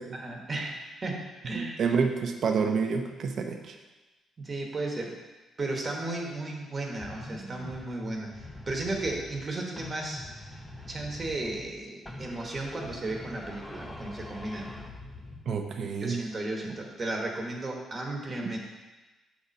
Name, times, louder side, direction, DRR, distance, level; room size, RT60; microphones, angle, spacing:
voice 1, 0.1-1.8 4.4-5.2 5.6-10.2 10.9-14.7 16.0-18.6, right 2 dB, 35° right, 0 dB, 1.2 m, -34 dB
voice 2, 1.5-3.8 15.5-16.2 18.4-18.5, right 5 dB, 60° right, 4 dB, 0.7 m, -28 dB
sound 1, 7.0-9.5 9.8-11.8 12.1-15.5, left 1 dB, 10° left, 0.8 m, -43 dB
6.8 x 4.2 x 5.2 m, 1.2 s
cardioid pair, 90°, 0 cm